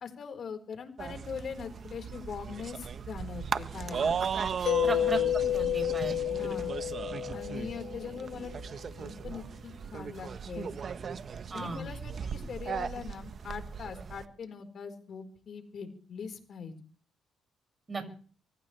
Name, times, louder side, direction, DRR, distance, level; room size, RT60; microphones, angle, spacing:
voice 1, 0.0-4.2 4.8-5.1 6.4-6.7 7.3-8.5 9.0-10.8 11.5-16.7, left 6 dB, 55° left, 6 dB, 4.4 m, -42 dB
sound 1, 1.0-14.2, right 6 dB, 50° right, 1.1 m, -37 dB
Mallet percussion, 4.7-8.4, left 12 dB, 70° left, 0.9 m, -30 dB
voice 2, 4.8-6.4 11.5-11.8 17.9-18.2, right 3 dB, 25° right, 5 dB, 6.3 m, -36 dB
24.5 x 16.0 x 3.4 m, 0.41 s
cardioid pair, 90°, 0 cm